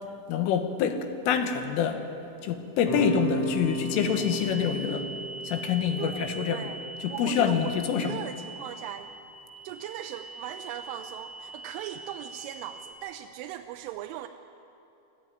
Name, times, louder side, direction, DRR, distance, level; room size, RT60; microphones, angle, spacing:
voice 1, 0.3-2.0 2.4-5.1 5.5-6.7 7.0-8.2, left 8 dB, 80° left, 7 dB, 3.8 m, -26 dB
sound 1, 2.8-8.0, right 2 dB, 65° left, 8.8 m, -35 dB
sound 2, 3.6-12.9, right 2 dB, 50° left, 1.3 m, -42 dB
voice 2, 6.0-6.8 7.1-9.1 9.6-14.3, right 12 dB, 85° right, 6 dB, 3.1 m, -38 dB
20.5 x 14.5 x 9.3 m, 2.8 s
omnidirectional pair, 5.7 m